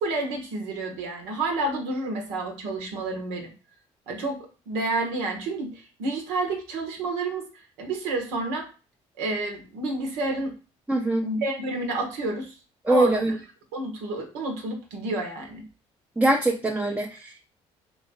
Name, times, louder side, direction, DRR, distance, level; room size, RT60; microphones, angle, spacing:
voice 1, 0.0-3.5 4.1-8.7 9.2-10.5 11.2-12.5 12.9-13.2 13.7-15.6, right 2 dB, 85° right, 3 dB, 1.0 m, -30 dB
voice 2, 10.9-11.2 12.8-13.4 16.2-17.4, right 1 dB, 10° right, 1 dB, 0.5 m, -23 dB
3.1 x 2.4 x 3.9 m, 0.34 s
supercardioid pair, 70°, 14 cm